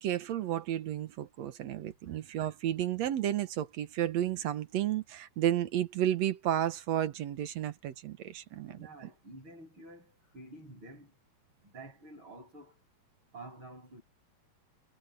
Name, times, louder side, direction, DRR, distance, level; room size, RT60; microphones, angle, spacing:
voice 1, 0.0-8.8, right 11 dB, 65° right, 2.3 m, -32 dB
voice 2, 8.7-11.1 11.6-12.8 13.3-14.0, right 2 dB, 40° right, 8.4 m, -50 dB
omnidirectional pair, 3.4 m